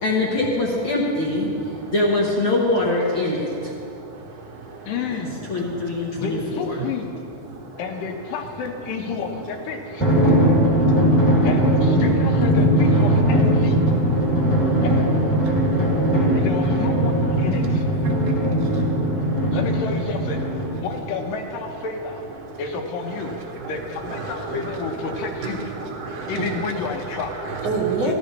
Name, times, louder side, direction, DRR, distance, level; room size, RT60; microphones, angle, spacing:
voice 1, 0.0-1.5 1.9-3.7 5.5-6.8, left 2 dB, 60° left, -4 dB, 1.4 m, -23 dB
voice 2, 4.9-5.4 6.1-7.1 7.8-10.0 11.4-13.8 14.8-14.9 16.3-17.8 19.5-20.4 20.8-22.2 22.6-23.3 23.7-25.6 26.3-27.3 28.0-28.1, left 5 dB, 75° left, 4 dB, 2.6 m, -30 dB
Drum, 10.0-21.0, right 1 dB, 5° left, 1.8 m, -19 dB
voice 3, 24.0-26.6 27.4-28.1, right 4 dB, 70° right, 0 dB, 0.9 m, -29 dB
14.5 x 13.0 x 3.3 m, 2.7 s
omnidirectional pair, 4.1 m